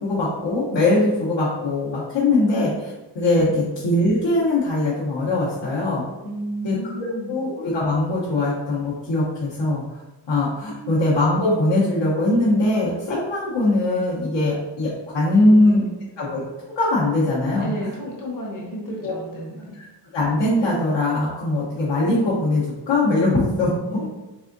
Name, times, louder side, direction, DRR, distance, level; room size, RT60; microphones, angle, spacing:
voice 1, 0.0-6.0 6.6-9.8 10.3-15.8 16.2-16.4 16.8-17.7 19.0-19.1 19.7-19.8 20.1-24.0, left 2 dB, 80° left, -9 dB, 1.1 m, -21 dB
voice 2, 6.2-7.4 10.7-11.0 15.3-16.0 17.6-19.7 23.9-24.0, right 1 dB, 45° left, -2 dB, 1.0 m, -33 dB
4.1 x 3.5 x 2.6 m, 1.1 s
wide cardioid pair, 155°, 43 cm